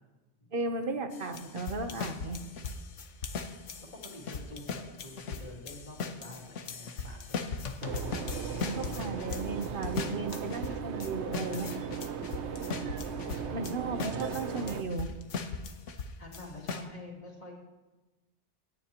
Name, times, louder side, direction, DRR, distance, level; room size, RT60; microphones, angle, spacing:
voice 1, 0.5-2.4 8.6-11.7 13.5-15.1, right 3 dB, 50° right, 7 dB, 1.1 m, -35 dB
sound 1, 1.1-13.7 14.0-16.8, left 5 dB, 80° left, 1.3 m, -38 dB
voice 2, 3.8-7.5 13.4-13.9 16.2-17.5, left 1 dB, 40° left, -3 dB, 2.8 m, -47 dB
sound 2, 7.8-14.8, right 7 dB, 70° right, 1.1 m, -37 dB
26.0 x 10.0 x 3.0 m, 1.2 s
omnidirectional pair, 1.2 m